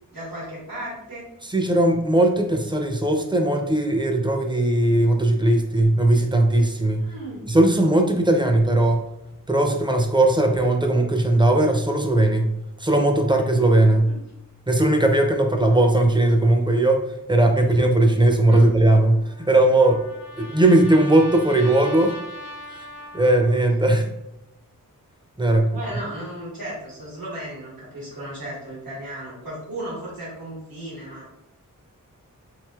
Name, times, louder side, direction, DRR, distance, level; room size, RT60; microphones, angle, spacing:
voice 1, 0.1-1.3 7.0-7.4 14.0-14.2 18.5-18.7 25.7-31.2, right 1 dB, 90° right, -7 dB, 1.5 m, -35 dB
voice 2, 1.5-7.1 7.5-9.1 9.5-14.1 14.7-20.0 20.4-22.2 22.7-22.8 23.1-24.1 25.4-25.8, right 1 dB, 15° right, 3 dB, 0.4 m, -18 dB
Trumpet, 18.9-23.7, equal, 90° left, 0.8 m, -40 dB
3.1 x 2.6 x 2.3 m, 0.85 s
wide cardioid pair, 60°, 34 cm